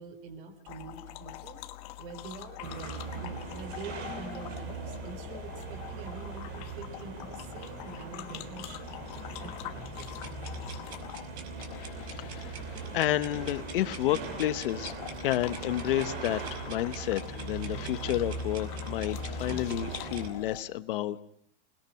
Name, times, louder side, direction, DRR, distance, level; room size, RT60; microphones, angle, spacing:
voice 1, 0.0-1.6 2.0-9.0 9.4-10.3, right 4 dB, 50° right, 11 dB, 3.8 m, -45 dB
sound 1, 0.7-20.6, left 14 dB, 35° left, 1.3 m, -45 dB
sound 2, 2.6-20.3, right 4 dB, 30° right, 3.9 m, -40 dB
sound 3, 9.9-20.3, right 6 dB, 70° right, 5.4 m, -47 dB
voice 2, 12.2-12.6 12.9-14.9 15.2-21.2, left 13 dB, 55° left, 12 dB, 1.1 m, -30 dB
27.0 x 21.0 x 5.8 m, 0.64 s
supercardioid pair, 175°, 33 cm